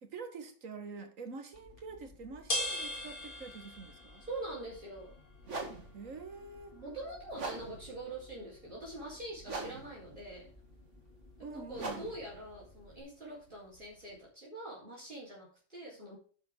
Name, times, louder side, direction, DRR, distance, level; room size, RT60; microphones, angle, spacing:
voice 1, 0.0-4.2 5.9-6.8 11.4-12.0, right 4 dB, 80° right, 7 dB, 2.0 m, -46 dB
sound 1, 1.5-13.0, left 1 dB, 45° left, 3.1 m, -45 dB
voice 2, 4.3-5.1 6.7-10.5 11.4-16.2, right 2 dB, 40° right, -6 dB, 4.4 m, -44 dB
sound 2, 4.6-4.8 5.4-14.2, right 3 dB, 65° right, 2.3 m, -45 dB
11.5 x 7.8 x 3.8 m, 0.41 s
omnidirectional pair, 1.3 m